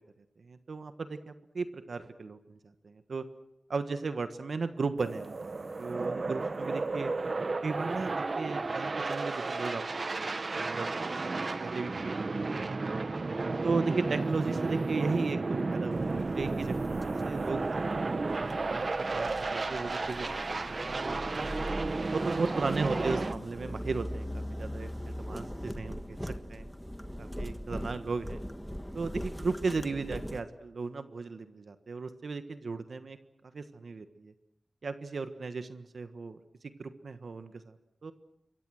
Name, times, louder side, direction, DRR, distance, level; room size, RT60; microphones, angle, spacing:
voice 1, 0.4-2.6 2.8-3.2 3.7-5.3 5.6-7.1 7.6-10.9 11.2-11.3 11.6-13.0 13.6-21.4 22.1-24.9 25.2-26.7 27.2-28.4 28.9-33.2 33.5-34.3 34.8-38.1, right 4 dB, 70° right, 9 dB, 1.4 m, -36 dB
sound 1, 5.0-23.3, right 3 dB, 50° right, 1.0 m, -33 dB
sound 2, 15.9-30.4, equal, 5° left, 1.5 m, -41 dB
27.0 x 23.0 x 6.4 m, 0.84 s
wide cardioid pair, 120°, 0 cm